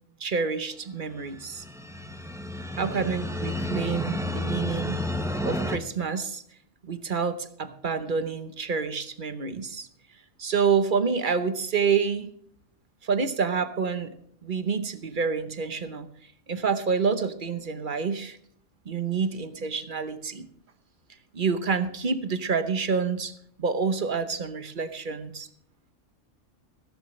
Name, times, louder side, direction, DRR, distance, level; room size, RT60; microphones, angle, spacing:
voice 1, 0.2-1.6 2.8-5.0 5.4-6.4 6.8-9.9 10.4-12.3 13.0-14.1 14.4-16.1 16.5-18.4 18.9-20.5 21.3-23.3 23.6-25.5, right 5 dB, 45° right, 11 dB, 1.0 m, -28 dB
sound 1, 1.2-5.8, left 1 dB, 5° right, 0.8 m, -31 dB
15.0 x 14.5 x 3.2 m, 0.67 s
omnidirectional pair, 1.3 m